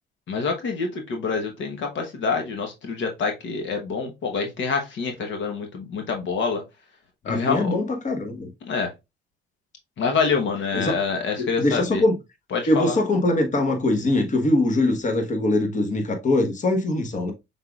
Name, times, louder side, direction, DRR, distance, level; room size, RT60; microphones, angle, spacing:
voice 1, 0.3-6.6 7.2-7.7 8.6-8.9 10.0-12.0 12.5-13.0, left 5 dB, 70° left, 1.1 m, -26 dB
voice 2, 7.2-8.5 10.7-11.0 11.4-12.2 12.7-17.3, left 2 dB, 40° left, 1.2 m, -22 dB
5.6 x 3.6 x 2.4 m
cardioid pair, 90°, 20 cm